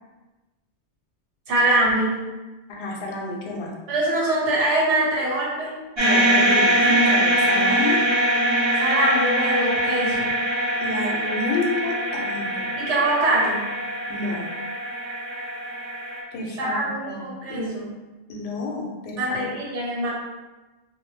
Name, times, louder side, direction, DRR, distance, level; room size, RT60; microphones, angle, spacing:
voice 1, 1.5-2.2 3.9-5.8 8.8-10.4 12.7-13.7 16.6-17.9 19.2-20.1, right 1 dB, 85° right, -4 dB, 1.1 m, -23 dB
voice 2, 2.7-3.7 6.0-8.0 10.8-12.7 14.1-14.5 16.3-17.8 18.3-19.5, left 3 dB, 70° left, -1 dB, 0.8 m, -30 dB
sound 1, 6.0-16.2, right 1 dB, 45° right, 0.3 m, -23 dB
2.1 x 2.1 x 3.1 m, 1.2 s
omnidirectional pair, 1.2 m